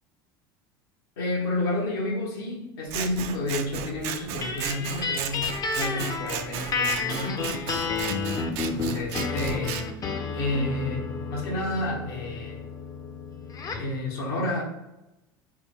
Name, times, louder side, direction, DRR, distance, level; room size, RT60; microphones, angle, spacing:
voice 1, 1.2-7.6 8.7-9.8 10.3-12.8 13.7-14.6, left 1 dB, 80° left, -2 dB, 1.2 m, -30 dB
Scissors, 2.9-9.8, right 9 dB, 60° right, 0.4 m, -35 dB
sound 1, 4.4-13.9, left 4 dB, 30° left, 0.5 m, -31 dB
3.6 x 2.2 x 3.5 m, 0.94 s
hypercardioid pair, 85°, 12 cm